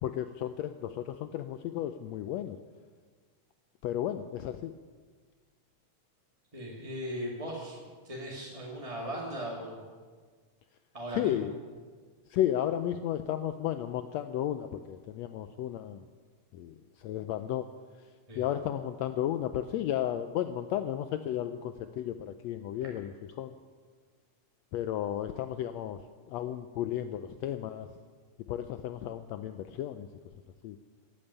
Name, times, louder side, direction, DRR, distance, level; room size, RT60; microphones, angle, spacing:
voice 1, 0.0-2.6 3.8-4.7 11.1-11.6 12.3-16.0 16.5-17.6 18.4-23.6 24.7-27.9 28.5-30.1 30.6-30.8, left 11 dB, 85° left, 10 dB, 1.5 m, -33 dB
voice 2, 6.5-7.8 8.0-9.8 10.9-11.3 18.3-18.4, equal, 15° right, -3 dB, 1.5 m, -38 dB
14.0 x 8.9 x 9.5 m, 1.5 s
omnidirectional pair, 3.6 m